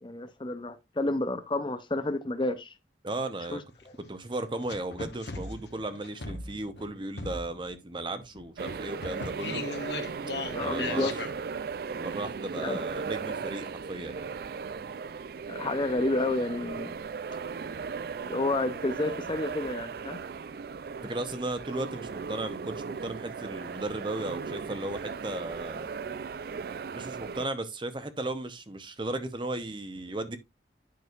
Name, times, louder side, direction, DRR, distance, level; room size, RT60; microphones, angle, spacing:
voice 1, 0.0-2.7 3.5-3.6 10.5-11.1 12.5-12.8 15.5-17.0 18.2-20.2, left 2 dB, 25° left, 0.5 m, -30 dB
voice 2, 3.0-3.6 4.0-9.6 10.6-11.1 11.9-14.3 21.0-25.9 26.9-30.4, right 2 dB, 25° right, 0.8 m, -35 dB
sound 1, 3.7-3.8 4.6-6.9 7.2-7.8 8.3-11.3, left 3 dB, 75° left, 1.2 m, -37 dB
sound 2, 8.6-27.5, right 5 dB, 55° right, 0.3 m, -37 dB
9.3 x 6.2 x 2.4 m
head